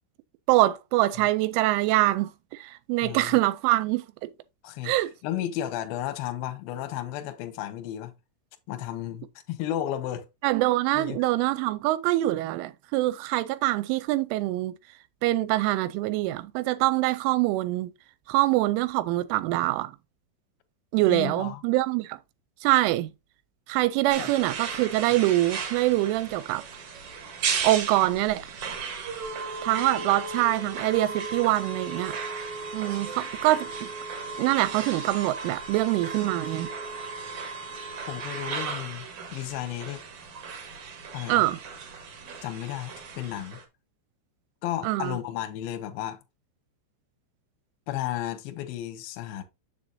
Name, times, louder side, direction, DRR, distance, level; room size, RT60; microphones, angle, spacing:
voice 1, 0.5-4.1 4.8-5.1 10.4-14.7 15.2-17.9 18.3-19.9 20.9-22.2 22.6-23.1 23.7-26.6 27.6-28.5 29.6-32.1 32.7-33.9 34.4-36.7 41.3-41.6 44.8-45.2, right 17 dB, 85° right, 3.0 m, -24 dB
voice 2, 3.0-3.4 4.6-4.9 5.2-8.1 8.7-10.3 10.9-11.2 21.1-21.6 24.2-24.3 38.1-40.0 41.1-41.5 42.4-43.6 44.6-46.2 47.9-49.4, left 12 dB, 75° left, 2.2 m, -33 dB
sound 1, 24.1-43.6, right 5 dB, 60° right, 2.0 m, -35 dB
7.7 x 7.0 x 2.6 m
omnidirectional pair, 5.7 m